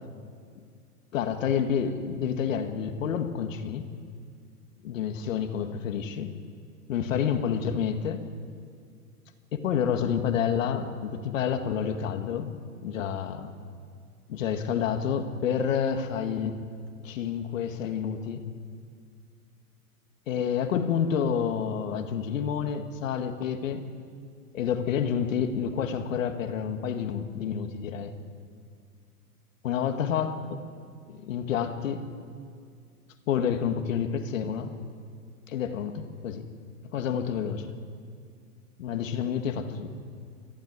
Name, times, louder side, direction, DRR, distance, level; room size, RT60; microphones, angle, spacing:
voice 1, 1.1-3.9 4.8-6.3 6.9-8.2 9.5-12.5 12.8-13.5 14.3-16.6 17.0-18.5 20.3-23.8 24.5-28.1 29.6-30.3 31.1-32.1 33.3-34.7 35.5-36.5 36.9-37.7 38.8-39.9, left 7 dB, 55° left, 7 dB, 2.1 m, -29 dB
24.0 x 15.5 x 9.7 m, 2.2 s
hypercardioid pair, 160°, 45 cm